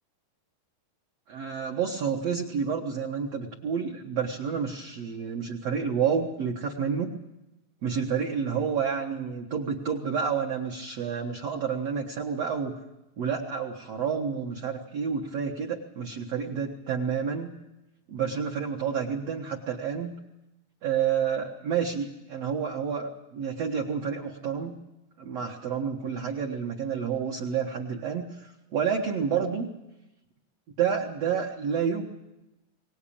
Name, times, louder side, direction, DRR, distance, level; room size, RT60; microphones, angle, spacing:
voice 1, 1.3-7.1 7.8-12.8 13.2-17.5 18.1-20.1 20.8-24.7 25.2-29.7 30.8-32.0, right 7 dB, 60° right, 0 dB, 1.7 m, -29 dB
23.0 x 18.5 x 8.7 m, 0.96 s
omnidirectional pair, 5.0 m